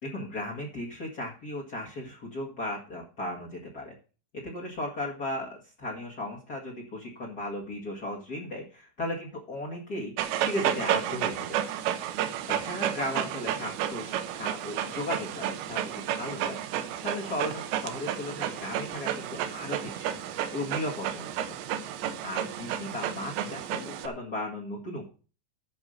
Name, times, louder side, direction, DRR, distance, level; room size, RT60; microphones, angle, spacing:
voice 1, 0.0-4.0 4.3-11.6 12.5-16.6 17.0-21.5 22.2-25.0, left 1 dB, 50° left, -3 dB, 1.1 m, -36 dB
Dog, 10.2-24.1, right 10 dB, 80° right, 3.0 m, -32 dB
13.0 x 5.4 x 6.5 m, 0.37 s
omnidirectional pair, 5.2 m